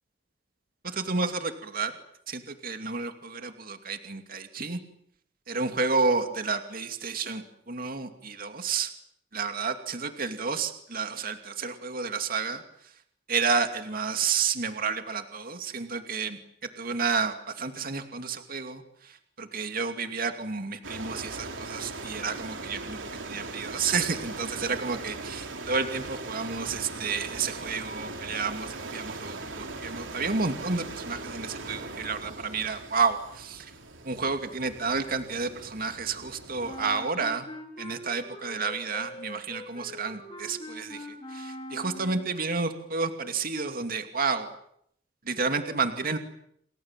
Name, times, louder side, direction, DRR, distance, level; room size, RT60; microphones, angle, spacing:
voice 1, 0.8-1.9 2.3-4.8 5.5-8.9 9.3-12.6 13.3-16.4 16.8-18.8 19.4-23.0 23.2-33.7 34.0-37.4 37.8-41.1 41.3-44.5 45.3-46.2, right 4 dB, 50° right, 7 dB, 2.6 m, -30 dB
sound 1, 20.8-37.0, right 3 dB, 90° right, 3.9 m, -40 dB
Wind instrument woodwind instrument, 36.6-42.3, left 1 dB, 25° left, 5.9 m, -42 dB
29.0 x 26.0 x 7.5 m, 0.73 s
head